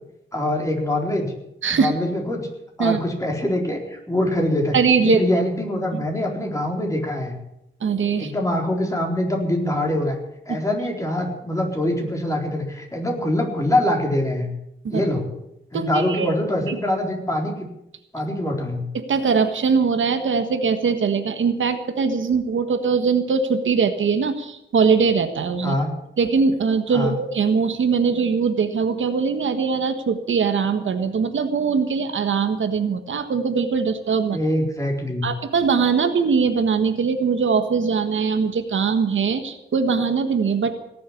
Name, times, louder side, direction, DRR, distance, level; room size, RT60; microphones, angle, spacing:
voice 1, 0.3-1.3 1.7-2.5 2.8-4.8 5.0-7.3 8.2-10.2 10.5-14.5 14.9-15.3 15.7-17.5 18.1-18.9 25.6-25.9 26.9-27.2 34.3-35.3, left 1 dB, 15° left, 0 dB, 4.1 m, -24 dB
voice 2, 4.7-5.2 5.9-6.0 7.8-8.3 10.5-10.6 14.8-15.0 15.7-16.3 16.7-16.8 18.9-25.7 26.2-34.4 35.2-40.7, right 5 dB, 80° right, 8 dB, 1.5 m, -21 dB
18.0 x 7.8 x 9.9 m, 0.83 s
wide cardioid pair, 110°, 20 cm